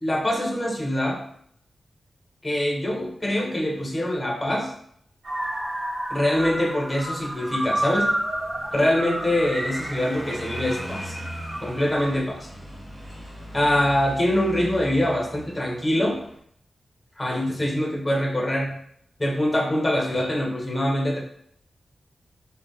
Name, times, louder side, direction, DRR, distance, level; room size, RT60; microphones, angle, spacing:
voice 1, 0.0-1.2 2.4-4.7 6.1-8.1 8.7-11.2 11.6-12.5 13.5-16.2 17.2-18.8 19.2-21.2, left 1 dB, 15° left, 0 dB, 0.6 m, -24 dB
sound 1, 5.2-12.1, right 1 dB, 25° right, 0.6 m, -30 dB
Car passing by, 7.9-16.4, equal, 10° right, 1.5 m, -40 dB
3.3 x 2.1 x 3.8 m, 0.66 s
wide cardioid pair, 140°, 0 cm